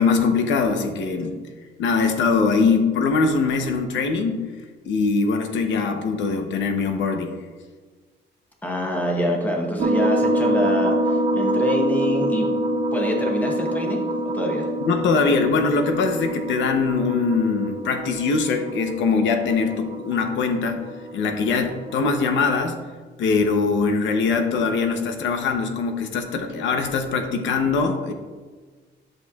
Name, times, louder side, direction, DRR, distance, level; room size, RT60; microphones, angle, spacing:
voice 1, 0.0-1.4 1.8-4.5 4.9-7.4 14.8-20.8 21.1-22.8 23.2-28.1, left 4 dB, 85° left, 5 dB, 0.8 m, -22 dB
voice 2, 8.6-12.5 12.9-14.0 14.3-14.7, left 1 dB, 10° left, 0 dB, 1.0 m, -25 dB
sound 1, 9.8-22.2, right 1 dB, 40° right, 0.7 m, -26 dB
10.5 x 6.4 x 2.4 m, 1.4 s
cardioid pair, 175°, 19 cm